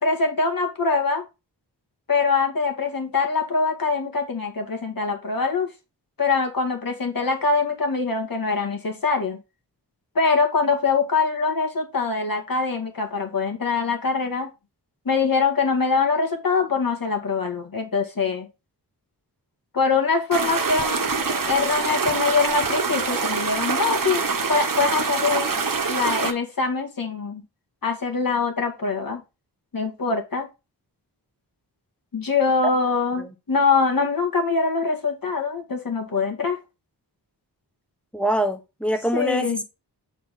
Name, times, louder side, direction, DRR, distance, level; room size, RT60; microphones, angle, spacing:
voice 1, 0.0-1.2 2.1-5.7 6.2-9.4 10.2-14.5 15.1-18.5 19.7-24.2 24.5-25.5 25.8-27.4 27.8-29.2 29.7-30.5 32.1-36.6 39.1-39.6, left 4 dB, 55° left, 2.0 m, -23 dB
sound 1, 20.3-26.3, right 5 dB, 50° right, 1.2 m, -25 dB
voice 2, 38.1-39.6, equal, 5° left, 1.2 m, -24 dB
8.9 x 4.2 x 3.7 m
wide cardioid pair, 90°, 41 cm